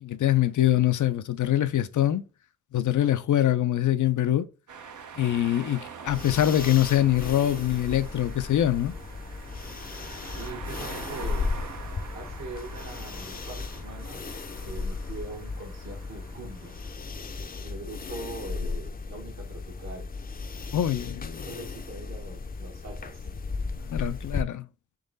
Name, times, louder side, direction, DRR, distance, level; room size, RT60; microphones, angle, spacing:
voice 1, 0.0-2.2 2.7-4.5 5.2-8.9 20.7-21.5 23.8-24.7, left 12 dB, 85° left, 0.5 m, -24 dB
sound 1, 4.7-16.9, right 6 dB, 80° right, 0.7 m, -45 dB
sound 2, 6.1-24.4, left 4 dB, 30° left, 0.4 m, -36 dB
voice 2, 10.3-11.5 12.1-16.8 17.6-20.1 21.4-23.3, right 2 dB, 65° right, 1.2 m, -42 dB
3.8 x 3.1 x 3.9 m
cardioid pair, 50°, 29 cm